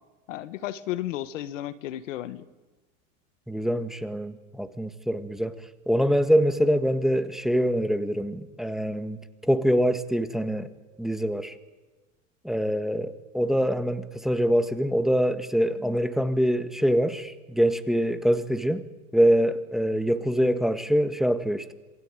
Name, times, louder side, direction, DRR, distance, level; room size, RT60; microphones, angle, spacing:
voice 1, 0.3-2.5, left 13 dB, 80° left, 14 dB, 1.5 m, -33 dB
voice 2, 3.5-5.5 5.9-10.7 11.0-11.5 12.4-18.8 19.1-21.7, equal, ahead, 10 dB, 1.6 m, -24 dB
27.0 x 20.0 x 9.0 m, 1.3 s
supercardioid pair, 110°, 37 cm